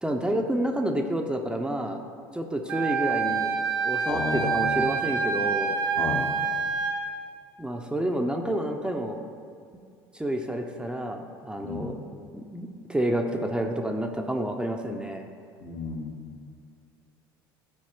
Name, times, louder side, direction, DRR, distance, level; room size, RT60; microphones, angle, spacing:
voice 1, 0.0-2.0 2.3-3.5 3.8-5.8 7.6-9.2 10.1-12.0 12.3-15.2, right 1 dB, 5° right, 3 dB, 0.6 m, -29 dB
Wind instrument woodwind instrument, 2.7-7.0, right 5 dB, 70° right, 0.8 m, -27 dB
voice 2, 4.1-4.9 6.0-6.3 11.6-12.0 15.6-16.4, left 4 dB, 55° left, 1 dB, 1.1 m, -33 dB
12.5 x 4.5 x 2.9 m, 2.3 s
figure-of-eight pair, 65°, 12 cm